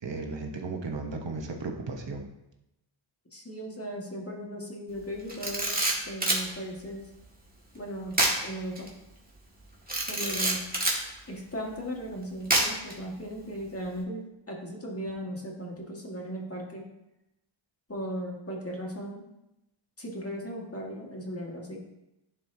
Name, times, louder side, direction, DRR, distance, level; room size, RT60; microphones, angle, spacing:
voice 1, 0.0-2.3, right 3 dB, 60° right, 3 dB, 1.1 m, -35 dB
voice 2, 3.3-7.0 7.7-8.9 10.1-10.6 11.3-16.9 17.9-19.2 20.0-21.8, equal, 30° left, -1 dB, 1.7 m, -37 dB
Camera, 5.3-6.4 8.1-8.4 8.8-8.9 9.9-11.0 12.5-12.9, right 1 dB, 20° right, 1.9 m, -26 dB
11.0 x 4.7 x 2.8 m, 0.89 s
wide cardioid pair, 55°, 49 cm